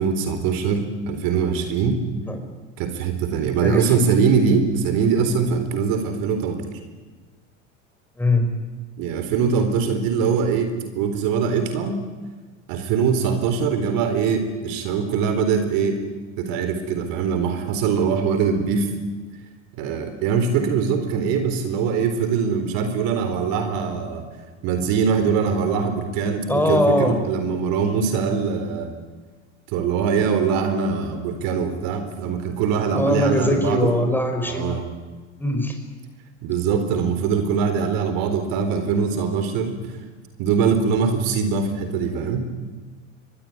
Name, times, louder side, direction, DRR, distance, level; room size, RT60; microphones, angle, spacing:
voice 1, 0.0-2.0 2.8-6.8 9.0-12.0 12.7-16.0 16.4-18.9 19.8-24.3 24.6-28.9 29.7-33.9 34.4-34.8 36.4-39.9 40.4-42.5, right 6 dB, 60° right, 8 dB, 4.1 m, -22 dB
voice 2, 3.6-3.9 8.2-8.5 26.5-27.2 32.9-34.8 35.4-35.8, left 1 dB, 5° left, 5 dB, 5.7 m, -21 dB
24.5 x 20.0 x 9.7 m, 1.3 s
hypercardioid pair, 95°, 38 cm